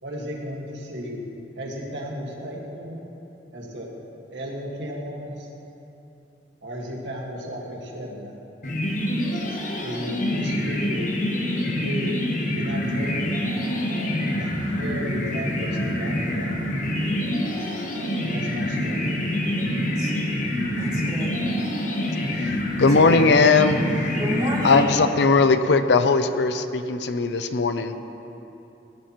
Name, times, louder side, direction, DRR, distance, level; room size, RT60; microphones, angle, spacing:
voice 1, 0.0-1.3 1.6-3.0 3.5-3.9 4.3-5.5 6.6-8.4 9.8-11.1 11.8-12.1 12.5-13.2 14.4-16.7 18.2-19.0 19.7-19.8, equal, 70° right, -2 dB, 1.8 m, -34 dB
sound 1, 8.6-25.2, left 1 dB, 45° left, 1.1 m, -26 dB
voice 2, 20.8-21.3 24.2-24.9, right 1 dB, 20° right, -4 dB, 1.8 m, -29 dB
voice 3, 22.8-23.8 24.6-27.9, left 4 dB, 65° left, 10 dB, 0.5 m, -19 dB
17.5 x 11.5 x 3.0 m, 3.0 s
head